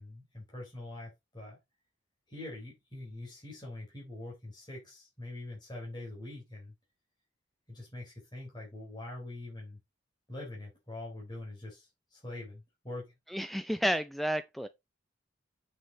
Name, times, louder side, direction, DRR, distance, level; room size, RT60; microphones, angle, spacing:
voice 1, 0.0-1.6 2.3-6.7 7.7-9.8 10.3-13.1, left 2 dB, 25° left, 3.9 m, -44 dB
voice 2, 13.3-14.7, equal, ahead, 0.4 m, -31 dB
7.3 x 6.2 x 4.0 m
head